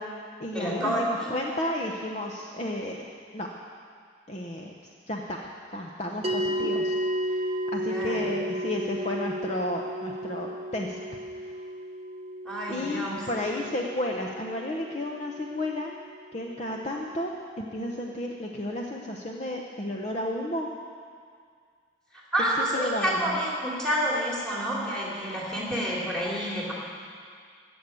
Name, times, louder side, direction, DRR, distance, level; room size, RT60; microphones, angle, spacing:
voice 1, 0.0-3.1 3.3-3.5 4.3-4.7 5.1-6.9 7.3-11.0 11.4-11.5 12.7-15.9 16.3-20.7 22.4-23.4, left 1 dB, 35° left, 0 dB, 0.8 m, -32 dB
voice 2, 0.5-1.3 7.9-8.3 12.4-13.2 22.3-26.7, equal, 5° left, -5 dB, 2.7 m, -29 dB
sound 1, 6.2-16.8, equal, 35° right, 1.0 m, -33 dB
15.0 x 7.0 x 9.2 m, 2.1 s
head